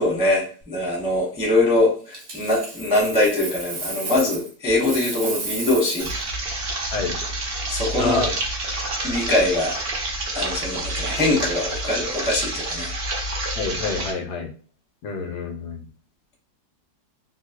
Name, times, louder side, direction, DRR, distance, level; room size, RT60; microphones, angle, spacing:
voice 1, 0.0-6.1 7.7-8.3 9.0-9.8 10.3-12.9, left 2 dB, 5° right, -4 dB, 0.5 m, -22 dB
Coin (dropping), 2.1-4.5 4.8-6.2 9.0-9.3, right 3 dB, 45° right, 0.8 m, -33 dB
sound 1, 6.0-14.1, right 2 dB, 80° right, 0.5 m, -28 dB
voice 2, 8.0-8.3 13.6-14.5 15.0-15.8, left 4 dB, 75° left, 3 dB, 1.0 m, -27 dB
3.0 x 2.6 x 2.8 m, 0.39 s
omnidirectional pair, 2.0 m